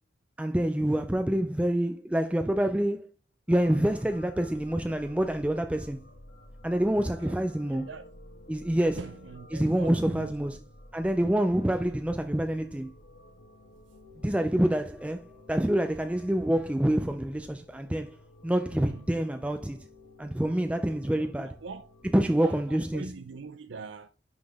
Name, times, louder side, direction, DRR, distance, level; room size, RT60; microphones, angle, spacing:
voice 1, 0.4-3.1 3.5-6.0 6.6-7.9 8.5-9.0 9.5-10.6 10.9-12.9 14.2-15.2 15.5-18.2 18.4-19.8 20.2-21.6 22.1-23.1, right 1 dB, 5° right, 0.4 m, -27 dB
sound 1, 3.5-22.3, left 1 dB, 90° left, 1.3 m, -52 dB
voice 2, 7.0-7.4 7.7-8.1 9.0-10.3 18.9-19.0 21.1-21.9 22.4-24.1, right 4 dB, 85° right, 0.5 m, -43 dB
10.0 x 4.0 x 3.5 m
head